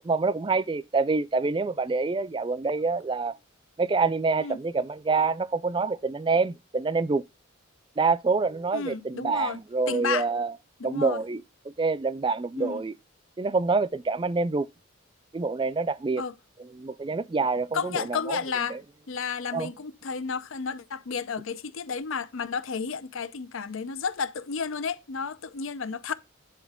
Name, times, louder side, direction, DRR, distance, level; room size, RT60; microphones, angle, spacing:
voice 1, 0.0-3.4 3.8-7.2 8.0-10.5 10.8-11.4 11.8-12.9 13.4-14.7 15.3-16.2 16.8-18.4 18.7-18.8 19.5-19.7, right 4 dB, 25° right, 0.3 m, -26 dB
voice 2, 8.7-9.6 9.9-10.3 10.8-11.2 12.6-12.8 16.2-16.3 17.7-18.8 19.1-26.1, left 5 dB, 80° left, 0.6 m, -32 dB
9.2 x 4.5 x 3.5 m
head